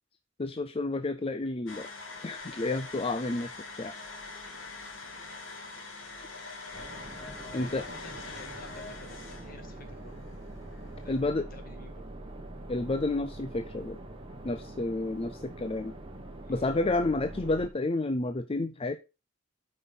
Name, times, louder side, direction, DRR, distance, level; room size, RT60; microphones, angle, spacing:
voice 1, 0.4-1.9 2.2-3.5 3.8-3.9 7.5-7.8 11.1-11.5 12.7-14.0 14.4-15.9 16.5-19.0, left 2 dB, 30° left, 0.5 m, -30 dB
sound 1, 1.7-11.2, left 3 dB, 75° left, 2.5 m, -44 dB
sound 2, 6.7-17.7, right 1 dB, 25° right, 1.6 m, -44 dB
voice 2, 7.5-10.3 11.0-12.1 16.4-16.7, left 2 dB, 45° left, 2.1 m, -51 dB
8.2 x 5.5 x 5.5 m
head